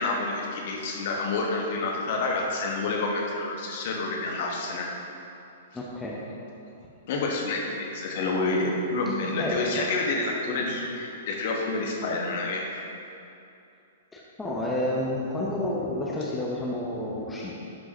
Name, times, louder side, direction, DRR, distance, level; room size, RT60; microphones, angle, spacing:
voice 1, 0.0-4.9 7.1-12.6, left 3 dB, 45° left, -1 dB, 1.3 m, -28 dB
voice 2, 5.7-6.2 9.1-9.8 14.1-17.5, left 1 dB, 10° left, -4 dB, 0.9 m, -30 dB
11.5 x 6.1 x 3.0 m, 2.7 s
figure-of-eight pair, 110°, 0 cm